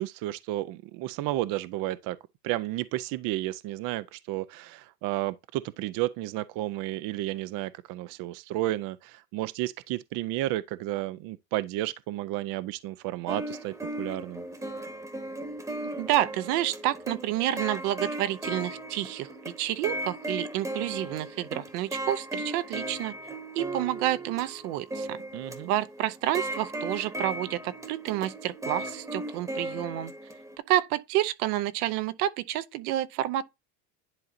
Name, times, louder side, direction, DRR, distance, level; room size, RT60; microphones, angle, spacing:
voice 1, 0.0-2.2 2.4-14.4 25.3-25.7, right 16 dB, 50° right, 0.5 m, -32 dB
sound 1, 13.3-30.6, right 1 dB, 5° right, 1.0 m, -37 dB
voice 2, 16.0-23.1 23.5-25.2 25.7-30.1 30.7-33.4, right 14 dB, 75° right, 0.8 m, -29 dB
10.5 x 3.9 x 2.6 m
supercardioid pair, 110°, 46 cm